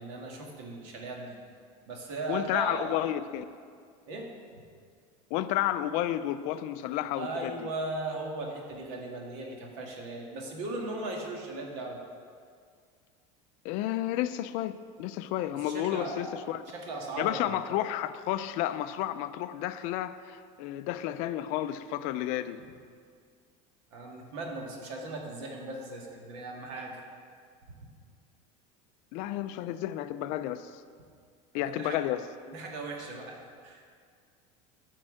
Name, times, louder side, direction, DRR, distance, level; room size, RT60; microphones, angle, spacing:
voice 1, 0.0-1.4 1.9-3.0 4.1-4.3 7.2-12.0 15.5-17.6 23.9-27.0 27.7-27.9 31.5-32.0 32.5-33.9, right 2 dB, 70° right, 0 dB, 2.0 m, -38 dB
voice 2, 2.3-3.4 5.3-7.7 13.6-16.6 17.2-22.6 29.1-30.8 31.5-32.2, left 13 dB, 50° left, 12 dB, 0.4 m, -31 dB
13.5 x 4.6 x 7.5 m, 2.1 s
cardioid pair, 170°, 16 cm